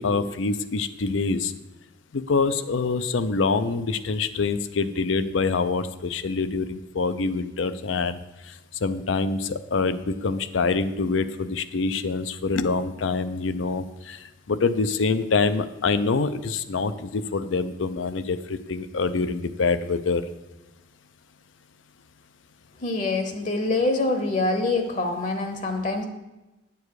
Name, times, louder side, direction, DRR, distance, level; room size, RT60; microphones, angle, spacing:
voice 1, 0.0-1.5 2.1-8.2 8.5-8.6 8.8-20.2, left 4 dB, 85° left, 11 dB, 0.6 m, -25 dB
voice 2, 22.8-26.0, left 2 dB, 40° left, 6 dB, 0.8 m, -25 dB
9.7 x 7.1 x 4.8 m, 1.1 s
head